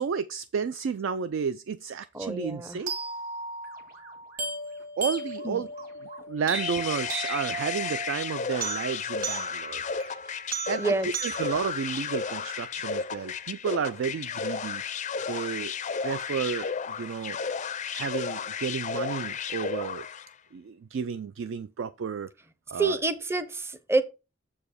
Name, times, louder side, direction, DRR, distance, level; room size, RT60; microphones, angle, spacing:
voice 1, 0.0-2.9 5.0-5.7 6.3-9.9 10.7-14.8 15.3-15.7 16.0-17.4 17.9-20.1 20.5-22.3 22.7-23.0, right 6 dB, 60° right, 0.3 m, -32 dB
voice 2, 2.1-2.8 5.4-5.7 10.8-11.1 22.7-24.0, right 3 dB, 10° right, 0.6 m, -27 dB
sound 1, 2.9-12.9, right 3 dB, 45° right, 2.0 m, -36 dB
sound 2, 6.5-20.3, left 6 dB, 35° left, 0.4 m, -33 dB
7.1 x 4.8 x 4.9 m
head